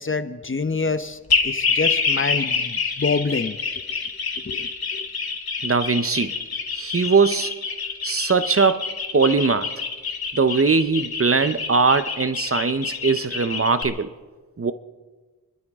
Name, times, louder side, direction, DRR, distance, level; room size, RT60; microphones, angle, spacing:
voice 1, 0.0-3.6 4.4-5.1, left 4 dB, 35° left, 11 dB, 0.9 m, -27 dB
sound 1, 1.3-13.8, left 5 dB, 85° left, 1.8 m, -26 dB
voice 2, 5.6-6.3 6.7-7.5 8.0-8.9 9.1-9.7 10.3-14.1 14.6-14.7, right 4 dB, 40° right, 12 dB, 0.8 m, -20 dB
29.0 x 12.0 x 3.6 m, 1.3 s
wide cardioid pair, 60°, 36 cm